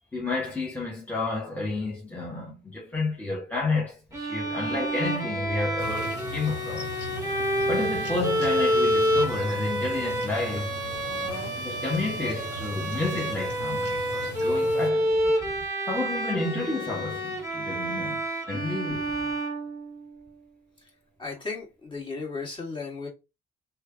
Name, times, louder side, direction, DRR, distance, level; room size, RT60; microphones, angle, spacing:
voice 1, 0.1-6.9 7.7-10.7 11.6-15.2 15.9-19.1, left 3 dB, 10° left, 0.9 m, -31 dB
Bowed string instrument, 4.1-20.2, equal, 15° right, 1.2 m, -28 dB
sound 1, 5.8-14.9, equal, 60° left, 1.4 m, -39 dB
voice 2, 21.2-23.1, left 4 dB, 25° left, 1.7 m, -35 dB
3.1 x 2.3 x 3.6 m
cardioid pair, 90°, 20 cm